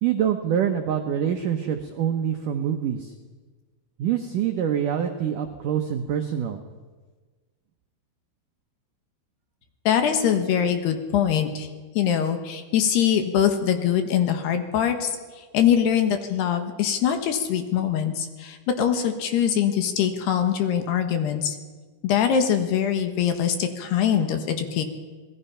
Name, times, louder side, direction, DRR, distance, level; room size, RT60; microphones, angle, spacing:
voice 1, 0.0-3.1 4.0-6.6, right 9 dB, 90° right, 5 dB, 1.8 m, -25 dB
voice 2, 9.9-11.7 11.9-15.1 15.4-21.6 22.0-24.8, left 8 dB, 70° left, 6 dB, 3.3 m, -23 dB
27.5 x 20.0 x 5.7 m, 1.4 s
omnidirectional pair, 5.3 m